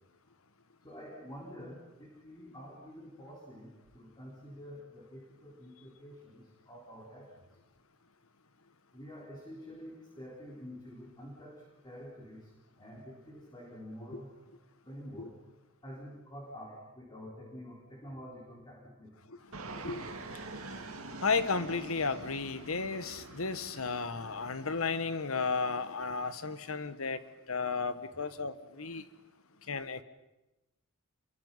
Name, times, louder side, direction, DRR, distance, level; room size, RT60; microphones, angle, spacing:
voice 1, 0.8-7.3 8.9-12.5 12.8-14.4 14.9-15.4 15.8-19.1 26.9-27.2 28.1-28.4, equal, 20° left, -3 dB, 4.2 m, -48 dB
Fixed-wing aircraft airplane, 19.5-24.9, right 3 dB, 85° right, 2.2 m, -46 dB
voice 2, 21.2-27.2 27.5-29.0 29.7-30.0, left 4 dB, 75° left, 13 dB, 1.4 m, -33 dB
29.0 x 23.5 x 5.6 m, 1.0 s
head